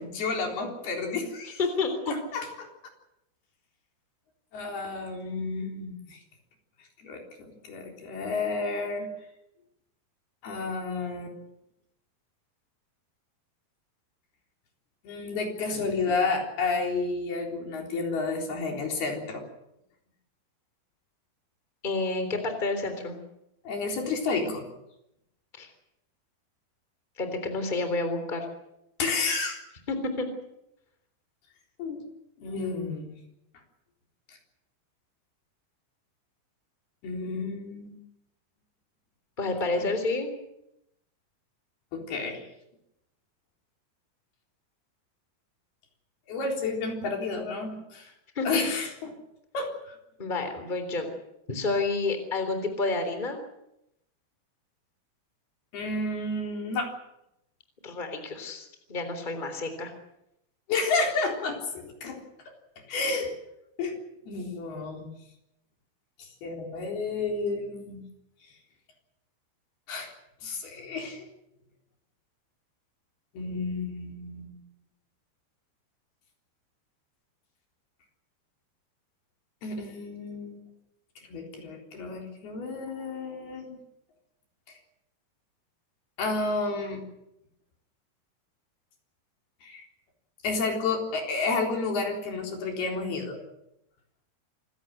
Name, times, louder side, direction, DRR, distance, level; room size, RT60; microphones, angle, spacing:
voice 1, 0.0-1.6 2.1-2.7 4.5-6.2 7.0-9.1 10.4-11.4 15.0-19.4 23.7-24.7 29.0-29.6 31.8-32.0 32.4-33.1 34.3-34.4 37.0-38.0 39.7-39.9 41.9-42.4 46.3-48.1 48.5-49.1 49.5-50.0 55.7-56.9 60.7-62.2 62.9-63.3 63.8-63.9 64.3-65.1 66.2-68.0 69.9-70.1 70.4-71.3 73.3-74.5 79.6-80.6 81.2-83.8 84.7-84.8 86.2-87.0 89.6-89.9 90.4-93.4, left 3 dB, 70° left, 2 dB, 5.8 m, -31 dB
voice 2, 1.6-2.1 21.8-23.2 25.6-25.7 27.2-28.5 29.9-30.2 39.4-40.3 48.3-48.5 50.2-51.1 51.5-53.4 57.8-59.9, left 3 dB, 10° left, 7 dB, 3.1 m, -29 dB
27.0 x 16.5 x 7.9 m, 0.83 s
omnidirectional pair, 4.7 m